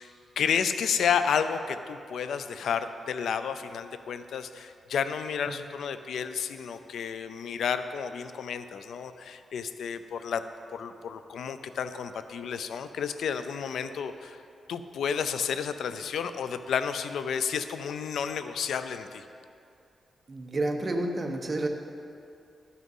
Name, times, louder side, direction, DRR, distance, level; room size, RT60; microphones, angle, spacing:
voice 1, 0.0-10.4 10.7-14.4 14.7-19.2, left 7 dB, 85° left, 11 dB, 0.5 m, -31 dB
voice 2, 20.3-21.7, right 2 dB, 35° right, 3 dB, 1.0 m, -30 dB
12.0 x 6.3 x 5.4 m, 2.6 s
cardioid pair, 100°, 0 cm